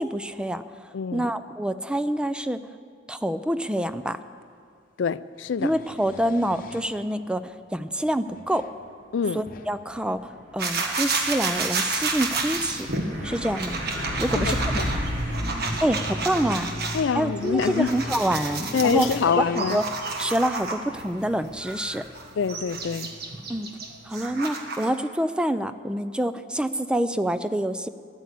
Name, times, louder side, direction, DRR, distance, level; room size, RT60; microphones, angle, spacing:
voice 1, 0.0-2.6 3.1-4.2 5.6-8.7 9.3-12.9 13.2-13.8 14.2-14.6 15.8-16.8 17.1-19.1 19.4-19.8 20.2-22.0 23.5-23.7 24.1-27.9, right 1 dB, 5° right, 12 dB, 0.4 m, -26 dB
voice 2, 0.9-1.3 5.0-5.7 9.1-9.5 14.3-14.9 16.9-17.9 18.7-19.8 22.4-23.1, left 6 dB, 85° left, 16 dB, 0.4 m, -25 dB
sound 1, 4.4-4.5 5.4-7.0 8.0-8.8 9.2-9.7 11.3-11.8 12.7-13.7 14.2-16.4 17.6-19.7 20.3-20.4 21.9-22.0, left 3 dB, 50° left, 0.9 m, -44 dB
Truck, 10.0-24.3, equal, 80° right, 3.1 m, -35 dB
sound 2, 10.6-17.0 17.4-21.0 21.6-25.0, right 3 dB, 60° right, 1.5 m, -31 dB
13.5 x 10.5 x 8.3 m, 2.2 s
head